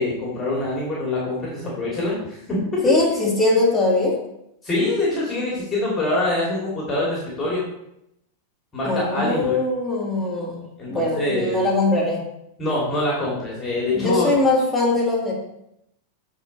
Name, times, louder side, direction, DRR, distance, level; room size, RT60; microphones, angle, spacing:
voice 1, 0.0-2.8 4.6-7.6 8.7-9.6 10.8-11.6 12.6-14.4, left 2 dB, 20° left, -5 dB, 2.9 m, -24 dB
voice 2, 2.8-4.2 8.8-12.2 13.9-15.3, left 2 dB, 5° left, -7 dB, 3.3 m, -21 dB
8.9 x 4.6 x 4.2 m, 0.81 s
figure-of-eight pair, 90°, 0 cm